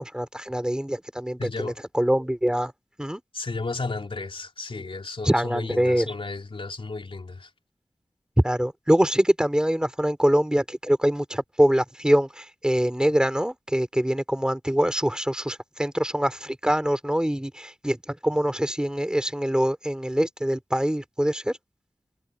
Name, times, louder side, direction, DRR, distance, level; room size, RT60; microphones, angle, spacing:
voice 1, 0.0-2.7 3.0-3.2 5.2-6.1 8.4-21.5, equal, 10° right, 3.3 m, -24 dB
voice 2, 1.4-1.8 3.3-7.5, left 3 dB, 65° left, 3.8 m, -33 dB
wide cardioid pair, 75°, 10 cm